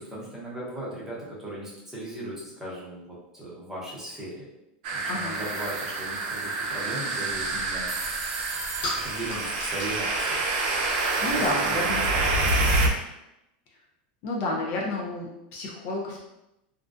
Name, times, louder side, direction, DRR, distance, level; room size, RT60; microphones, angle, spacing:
voice 1, 0.0-4.5 4.9-7.9 9.0-10.4 11.1-12.9, right 1 dB, 10° right, -7 dB, 0.8 m, -38 dB
sound 1, 4.8-12.9, right 2 dB, 65° right, 0.5 m, -27 dB
voice 2, 5.1-5.4 11.2-12.1 14.2-16.3, left 2 dB, 45° left, -2 dB, 0.5 m, -30 dB
sound 2, 5.4-5.5 5.7-5.8 7.6-10.8, right 3 dB, 40° right, 0.9 m, -40 dB
sound 3, 7.3-12.8, left 1 dB, 75° left, 0.8 m, -40 dB
2.4 x 2.2 x 2.4 m, 0.89 s
supercardioid pair, 145°, 5 cm